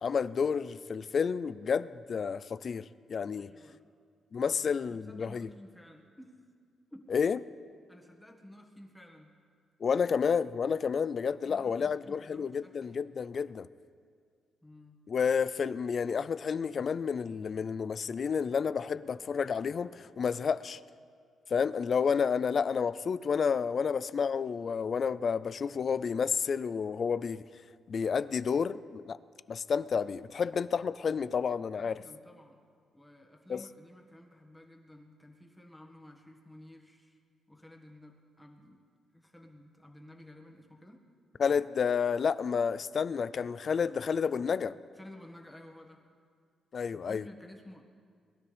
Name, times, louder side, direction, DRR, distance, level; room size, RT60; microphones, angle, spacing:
voice 1, 0.0-3.5 4.3-5.5 7.1-7.4 9.8-13.7 15.1-20.8 21.5-27.4 27.9-29.2 29.5-32.0 33.5-33.6 41.4-44.8 46.7-47.2, left 6 dB, 50° left, 0.4 m, -30 dB
voice 2, 3.3-3.8 4.5-6.5 6.9-7.1 7.9-9.3 11.3-12.9 14.6-15.0 31.8-32.6 32.9-37.2 37.5-38.8 39.1-41.1 44.9-46.1 46.9-47.8, left 1 dB, 10° left, 1.7 m, -53 dB
22.0 x 13.0 x 3.4 m
cardioid pair, 100°, 0 cm